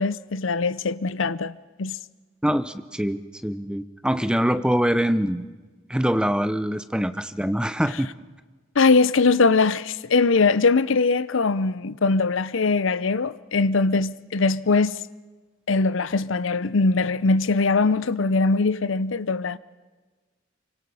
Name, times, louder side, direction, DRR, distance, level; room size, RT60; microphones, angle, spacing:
voice 1, 0.0-1.5 1.8-2.0 8.8-15.0 15.7-19.6, left 4 dB, 70° left, 0.7 m, -21 dB
voice 2, 2.4-5.4 5.9-8.1, equal, 5° right, 0.8 m, -24 dB
25.0 x 24.5 x 5.6 m
head